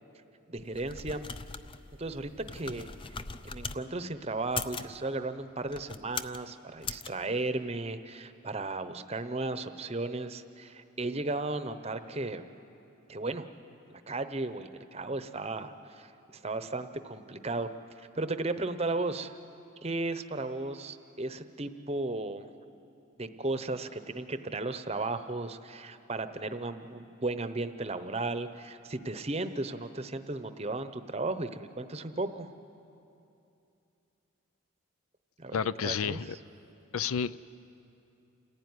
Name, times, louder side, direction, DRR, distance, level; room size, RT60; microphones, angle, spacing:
voice 1, 0.5-1.2 2.0-2.9 3.4-12.5 13.1-13.5 13.9-17.7 18.2-19.3 19.8-22.5 23.2-32.5 35.4-35.6 35.8-36.4, right 2 dB, 30° right, 10 dB, 0.8 m, -35 dB
sound 1, 0.6-3.8 4.4-4.9 5.6-6.4 6.8-7.1, left 5 dB, 25° left, 0.5 m, -40 dB
voice 2, 35.5-36.4 36.9-37.4, left 6 dB, 85° left, 16 dB, 0.5 m, -30 dB
28.5 x 15.0 x 9.6 m, 2.8 s
head